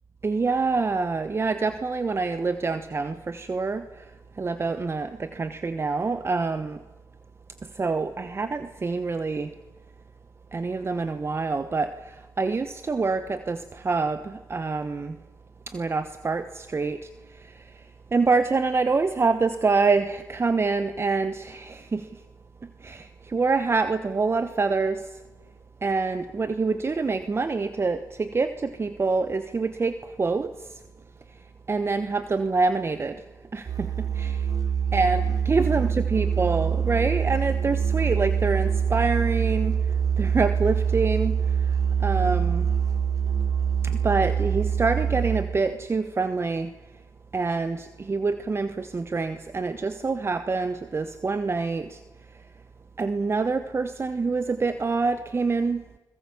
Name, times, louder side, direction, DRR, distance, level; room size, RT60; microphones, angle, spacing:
voice 1, 0.2-6.8 7.6-9.5 10.5-15.2 15.7-17.9 18.1-22.2 22.6-25.2 25.8-30.8 31.7-33.2 33.5-34.5 34.9-42.7 43.8-46.7 47.3-52.0 53.0-55.8, right 4 dB, 35° right, 11 dB, 1.1 m, -26 dB
Musical instrument, 33.7-45.7, right 7 dB, 55° right, 3.5 m, -25 dB
28.0 x 21.5 x 7.2 m, 1.1 s
cardioid pair, 65°, 7 cm